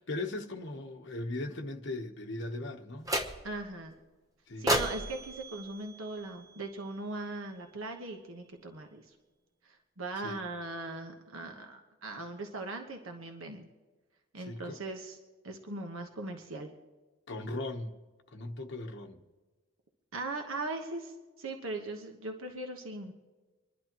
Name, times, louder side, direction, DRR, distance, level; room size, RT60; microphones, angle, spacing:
voice 1, 0.0-3.1 4.5-4.7 10.2-10.4 14.5-14.8 17.3-18.0 18.3-19.2, left 2 dB, 55° left, 1.0 m, -38 dB
sound 1, 3.1-3.7 4.7-6.9, right 1 dB, 15° right, 0.9 m, -34 dB
voice 2, 3.4-3.9 4.6-9.0 9.6-13.7 14.3-15.2 15.4-16.7 20.1-23.1, right 2 dB, 75° right, 1.2 m, -39 dB
26.0 x 11.5 x 3.0 m
head